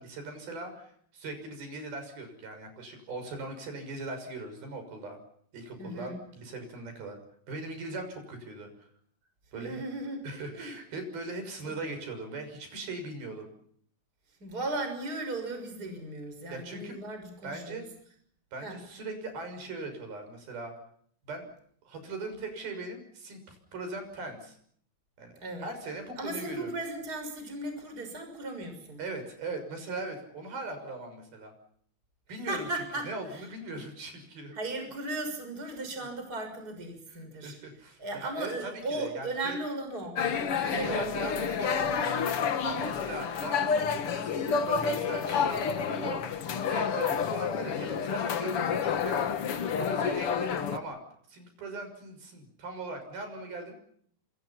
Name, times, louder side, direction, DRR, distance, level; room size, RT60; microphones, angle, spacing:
voice 1, 0.0-5.2 5.5-7.2 7.5-8.9 9.5-9.8 10.2-13.5 16.5-17.0 17.4-17.9 18.5-20.7 21.2-21.5 21.8-24.6 25.2-25.3 25.6-26.7 29.0-31.5 32.3-32.7 33.1-34.5 37.1-39.6 40.6-46.2 46.7-49.4 49.8-51.0 51.3-53.7, right 2 dB, 65° right, 6 dB, 8.2 m, -40 dB
voice 2, 5.8-6.2 9.5-10.3 10.5-10.7 11.6-11.7 14.3-17.9 18.6-18.8 25.4-25.7 26.2-29.0 32.4-33.5 34.5-37.5 38.0-40.2 40.5-41.7, right 2 dB, 20° right, 6 dB, 6.6 m, -36 dB
sound 1, 40.2-50.8, left 6 dB, 55° left, 1.6 m, -29 dB
27.5 x 27.0 x 5.8 m, 0.64 s
omnidirectional pair, 4.6 m